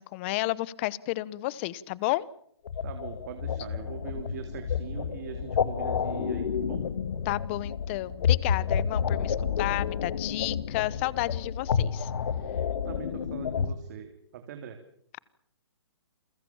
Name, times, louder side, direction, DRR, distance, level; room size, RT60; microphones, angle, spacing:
voice 1, 0.0-2.3 7.2-12.1, left 18 dB, 30° left, 21 dB, 1.0 m, -32 dB
sound 1, 2.7-13.7, left 7 dB, 65° left, 2.0 m, -30 dB
voice 2, 2.8-6.8 12.8-14.8, right 8 dB, 40° right, 6 dB, 3.2 m, -41 dB
29.5 x 22.5 x 7.2 m, 0.66 s
hypercardioid pair, 160°, 14 cm